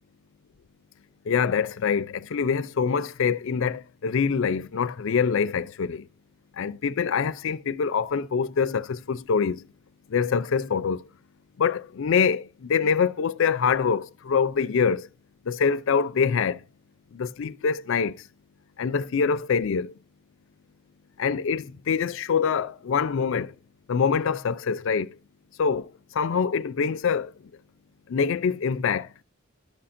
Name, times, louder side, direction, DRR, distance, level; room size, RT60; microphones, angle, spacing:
voice 1, 1.3-6.1 6.6-9.6 10.1-11.0 11.6-15.1 15.5-16.6 17.1-18.2 18.8-19.9 21.2-23.5 23.9-25.1 25.6-27.3 28.1-29.1, left 6 dB, 60° left, 0.4 m, -25 dB
12.0 x 5.7 x 2.5 m
head